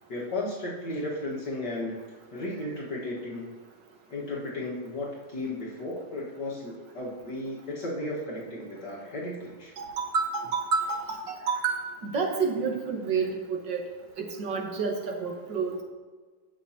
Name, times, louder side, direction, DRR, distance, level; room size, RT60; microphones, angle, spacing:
voice 1, 0.1-3.5 4.1-9.7, left 1 dB, 60° left, -5 dB, 2.2 m, -34 dB
voice 2, 9.8-13.8 14.2-15.7, right 5 dB, 70° right, 2 dB, 2.0 m, -29 dB
17.0 x 6.0 x 2.9 m, 1.4 s
omnidirectional pair, 2.1 m